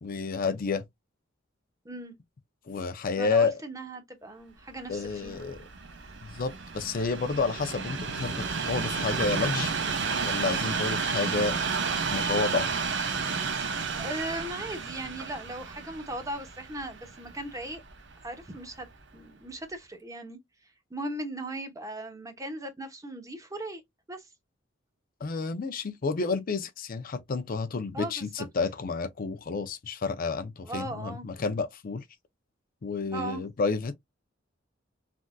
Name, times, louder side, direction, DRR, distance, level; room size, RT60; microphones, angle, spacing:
voice 1, 0.0-0.8 2.7-3.6 4.9-5.6 6.2-9.7 10.2-11.6 12.1-12.7 25.2-32.0 32.8-34.0, left 4 dB, 45° left, 0.5 m, -30 dB
voice 2, 3.2-5.4 13.7-17.8 18.2-18.9 19.1-20.4 20.9-23.8 24.1-24.3 27.9-28.5 30.6-31.2 33.1-33.4, right 1 dB, 15° right, 0.8 m, -38 dB
Train, 4.9-18.1 18.8-18.9, right 5 dB, 65° right, 0.7 m, -32 dB
3.4 x 2.6 x 2.2 m
head